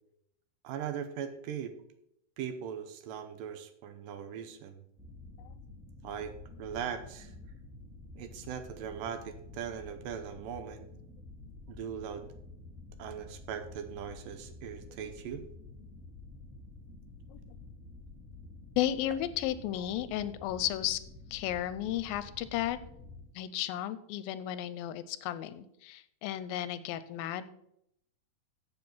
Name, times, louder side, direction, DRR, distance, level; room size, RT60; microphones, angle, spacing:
voice 1, 0.6-1.8 2.4-4.8 6.0-7.3 8.2-10.9 11.7-12.3 13.0-15.4, right 8 dB, 80° right, 9 dB, 2.3 m, -40 dB
sound 1, 5.0-23.3, left 3 dB, 5° right, 1.6 m, -50 dB
voice 2, 18.8-21.0 21.3-22.8 23.4-27.5, left 12 dB, 85° left, 14 dB, 2.3 m, -34 dB
7.8 x 7.0 x 6.1 m, 0.76 s
omnidirectional pair, 4.2 m